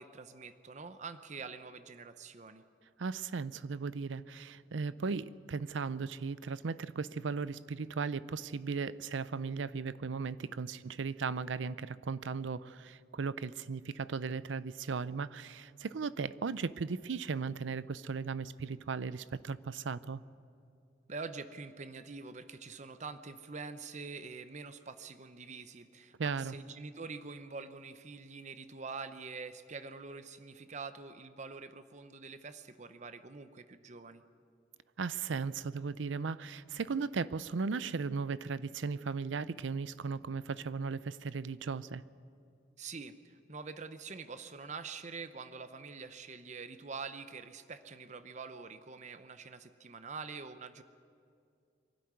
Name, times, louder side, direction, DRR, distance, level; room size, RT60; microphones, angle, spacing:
voice 1, 0.0-2.6 21.1-34.2 42.8-50.8, right 4 dB, 40° right, 11 dB, 0.8 m, -45 dB
voice 2, 3.0-20.2 26.2-26.5 35.0-42.0, right 5 dB, 85° right, 17 dB, 0.5 m, -37 dB
23.5 x 12.5 x 9.5 m, 2.4 s
head